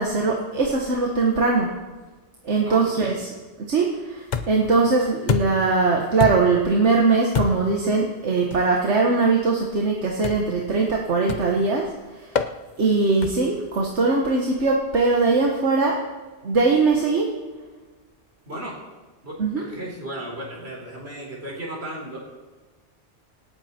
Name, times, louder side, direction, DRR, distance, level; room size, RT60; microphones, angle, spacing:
voice 1, 0.0-1.7 2.4-3.1 3.7-11.9 12.8-16.0 16.4-17.3 19.4-19.6, right 3 dB, 85° right, 0 dB, 1.7 m, -21 dB
voice 2, 2.7-3.1 18.5-18.8 19.2-22.2, right 1 dB, 65° right, -2 dB, 4.2 m, -35 dB
sound 1, 4.3-4.7 5.3-5.7 6.2-6.6 7.3-7.8 8.5-8.7 10.2-10.6 11.3-11.6 12.4-12.6 13.2-13.6, left 6 dB, 45° left, 0.8 m, -27 dB
26.0 x 8.8 x 4.4 m, 1.3 s
omnidirectional pair, 1.2 m